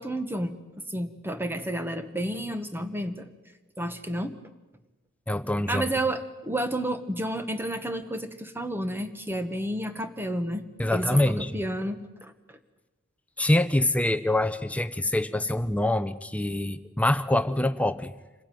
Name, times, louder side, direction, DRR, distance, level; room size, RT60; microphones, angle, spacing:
voice 1, 0.0-3.3 3.8-4.4 5.7-10.6 10.9-12.6, right 1 dB, 10° right, 9 dB, 1.3 m, -31 dB
voice 2, 5.3-5.9 10.8-11.6 13.4-18.1, left 1 dB, 5° left, 12 dB, 0.7 m, -25 dB
26.5 x 16.0 x 9.3 m, 1.2 s
head